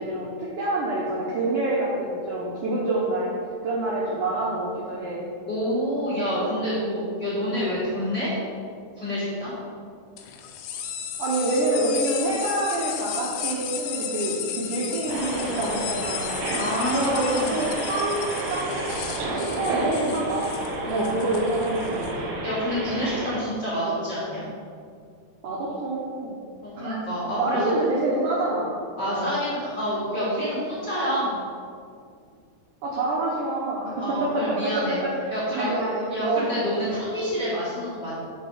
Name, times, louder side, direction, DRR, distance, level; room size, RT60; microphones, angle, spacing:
voice 1, 0.0-3.3 3.6-5.2 7.3-7.5 11.2-16.3 16.9-18.9 19.3-20.5 20.9-22.3 25.4-26.4 26.8-27.0 27.4-29.3 32.8-33.9 34.2-34.6 35.0-36.7, right 2 dB, 90° right, -5 dB, 1.8 m, -27 dB
voice 2, 5.5-8.3 8.9-9.5 16.5-17.6 19.6-20.2 20.8-21.2 22.4-24.4 26.6-27.7 29.0-31.4 34.0-35.0 35.3-35.7 36.1-38.2, equal, 45° left, -9 dB, 1.5 m, -28 dB
sound 1, 10.2-22.1, left 8 dB, 80° left, 2.6 m, -34 dB
sound 2, 15.1-23.4, right 2 dB, 65° right, 2.1 m, -31 dB
7.3 x 4.7 x 5.6 m, 2.3 s
omnidirectional pair, 4.9 m